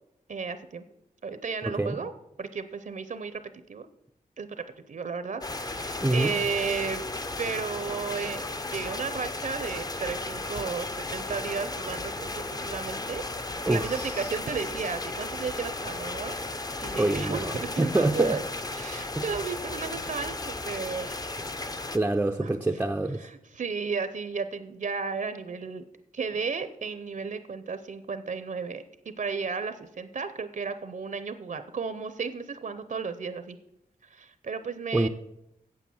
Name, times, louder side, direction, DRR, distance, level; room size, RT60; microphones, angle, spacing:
voice 1, 0.3-0.8 1.2-2.1 2.4-3.4 3.7-3.9 4.4-7.0 7.4-13.2 13.7-16.4 16.8-18.4 18.8-21.3 22.4-22.5 23.2-25.8 26.1-33.6 34.1-35.1, right 5 dB, 60° right, 12 dB, 0.7 m, -33 dB
voice 2, 1.6-2.0 6.0-6.4 13.7-14.3 16.9-18.4 19.2-19.3 21.9-23.3 34.9-35.1, right 2 dB, 10° right, 5 dB, 0.5 m, -26 dB
sound 1, 5.4-22.0, left 2 dB, 25° left, 0.7 m, -35 dB
8.5 x 7.8 x 7.1 m, 0.84 s
wide cardioid pair, 110°, 15 cm